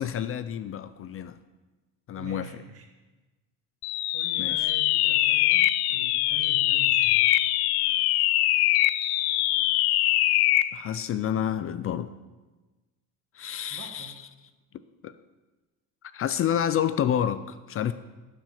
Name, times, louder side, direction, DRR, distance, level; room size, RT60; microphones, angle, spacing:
voice 1, 0.0-1.4 2.1-2.5 4.4-4.6 10.7-12.1 13.3-14.1 15.0-15.1 16.1-17.9, left 9 dB, 40° left, 13 dB, 0.4 m, -29 dB
voice 2, 2.2-2.9 4.1-7.3 13.7-14.3, right 5 dB, 40° right, 3 dB, 1.8 m, -45 dB
sound 1, 3.8-10.8, left 15 dB, 85° left, 0.5 m, -23 dB
12.5 x 7.6 x 5.6 m, 1.2 s
cardioid pair, 140°, 37 cm